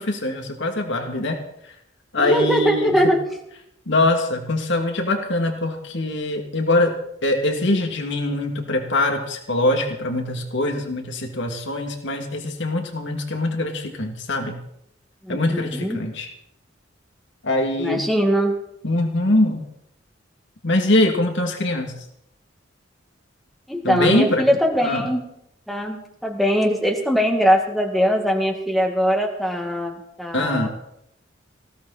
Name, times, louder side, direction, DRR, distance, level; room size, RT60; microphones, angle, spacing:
voice 1, 0.0-1.4 2.1-2.9 3.9-6.9 7.2-14.6 15.3-16.3 17.4-18.0 18.8-19.6 20.6-21.9 23.8-24.4 24.8-25.1 30.3-30.7, left 1 dB, 65° left, 3 dB, 2.7 m, -22 dB
voice 2, 2.2-3.2 15.2-16.0 17.8-18.5 23.7-25.2 25.7-30.7, equal, ahead, 1 dB, 2.1 m, -21 dB
19.5 x 16.5 x 4.3 m, 0.77 s
head